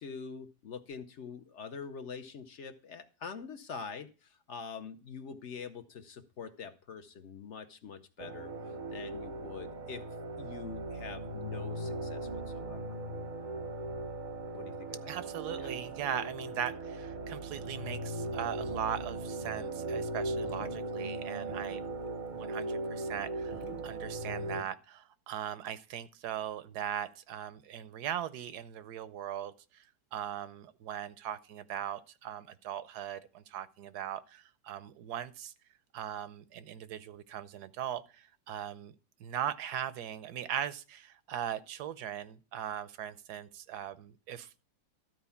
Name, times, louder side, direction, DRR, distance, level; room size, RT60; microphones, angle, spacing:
voice 1, 0.0-8.5 8.9-10.0 10.4-13.0 14.5-15.2 15.6-15.7, left 5 dB, 55° left, 1.0 m, -45 dB
sound 1, 8.2-24.6, right 2 dB, 40° right, 0.7 m, -38 dB
voice 2, 15.1-21.8 22.3-29.8 30.1-35.5 35.9-38.9 39.2-44.6, right 10 dB, 75° right, 1.2 m, -39 dB
sound 2, 18.3-19.5 19.8-24.5, left 2 dB, 25° left, 0.6 m, -50 dB
13.0 x 4.5 x 7.0 m
omnidirectional pair, 1.7 m